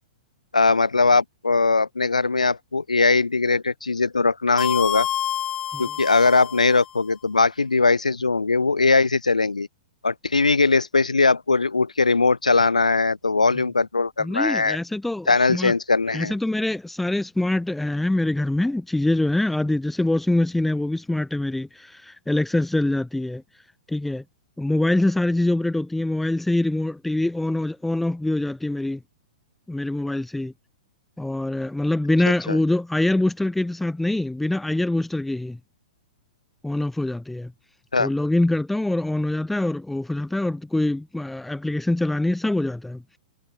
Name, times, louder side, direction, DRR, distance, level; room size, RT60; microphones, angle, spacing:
voice 1, 0.5-5.1 5.8-9.7 10.0-14.8 15.3-16.3 32.5-32.6 37.9-38.1, left 3 dB, 75° left, 0.7 m, -20 dB
sound 1, 4.6-6.9, left 10 dB, 20° left, 1.0 m, -28 dB
voice 2, 14.2-15.7 16.1-23.4 23.9-24.2 24.6-29.0 29.7-30.5 31.2-35.6 36.6-37.5 38.0-43.0, left 1 dB, 5° left, 3.6 m, -24 dB
figure-of-eight pair, 105°, 4 cm